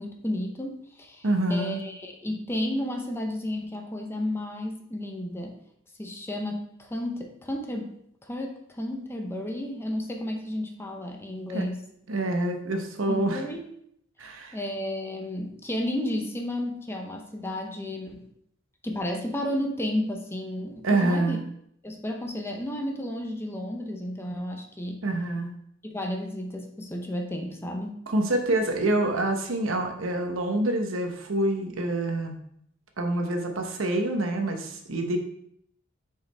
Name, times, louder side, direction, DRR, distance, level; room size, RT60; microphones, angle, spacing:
voice 1, 0.0-5.6 6.0-8.0 8.2-11.9 13.1-13.7 14.5-18.2 18.8-21.4 21.8-25.0 25.9-28.0, left 1 dB, 10° left, 2 dB, 0.7 m, -32 dB
voice 2, 1.2-1.8 11.5-11.7 12.1-13.4 14.2-14.6 20.8-21.4 25.0-25.6 28.1-32.4 33.0-35.2, right 1 dB, 90° right, 4 dB, 1.0 m, -26 dB
6.1 x 4.8 x 3.4 m, 0.71 s
head